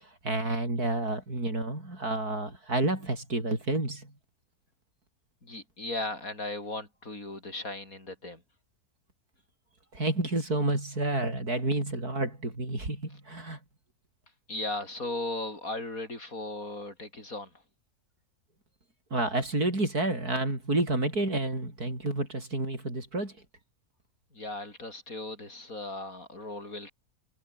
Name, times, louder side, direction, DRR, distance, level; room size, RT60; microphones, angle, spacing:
voice 1, 0.0-4.1 9.9-13.6 19.1-23.3, right 2 dB, 80° right, 7.9 m, -30 dB
voice 2, 5.4-8.4 14.5-17.5 24.3-26.9, left 2 dB, 65° left, 6.5 m, -37 dB
omnidirectional pair, 1.6 m